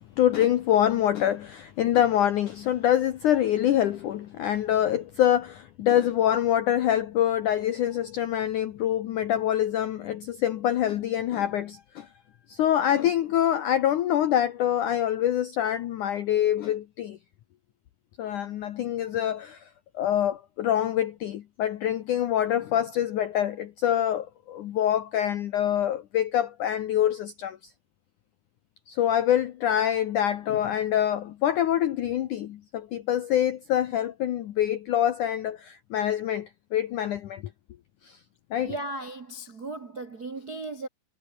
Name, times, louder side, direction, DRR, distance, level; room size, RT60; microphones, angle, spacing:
voice 1, 0.2-12.1 12.5-17.2 18.2-19.6 19.9-27.6 28.9-37.4 38.0-38.2 38.5-38.7, left 11 dB, 75° left, 1.8 m, -25 dB
voice 2, 38.6-40.9, right 2 dB, 50° right, 1.1 m, -36 dB
omnidirectional pair, 5.0 m